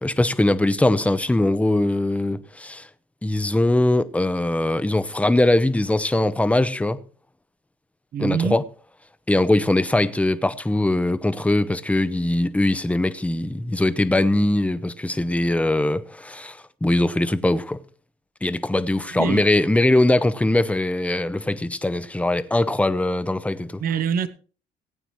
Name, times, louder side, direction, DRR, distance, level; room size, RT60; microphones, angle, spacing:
voice 1, 0.0-2.9 3.2-7.0 8.2-8.6 9.3-17.8 18.4-23.8, left 1 dB, 10° left, 0.9 m, -21 dB
voice 2, 8.1-8.6 19.2-19.5 23.8-24.3, right 7 dB, 60° right, 1.1 m, -24 dB
19.5 x 8.9 x 3.2 m
cardioid pair, 110°, 17 cm